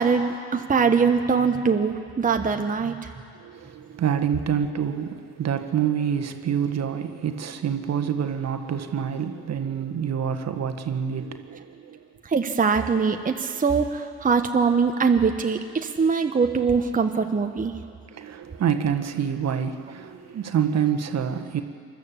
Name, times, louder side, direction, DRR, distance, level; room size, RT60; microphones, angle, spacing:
voice 1, 0.0-3.0 12.2-17.7, right 5 dB, 25° right, 5 dB, 1.2 m, -22 dB
voice 2, 3.4-12.0 18.1-21.6, right 8 dB, 45° right, 7 dB, 1.6 m, -27 dB
28.5 x 12.5 x 7.4 m, 2.3 s
hypercardioid pair, 50°, 35 cm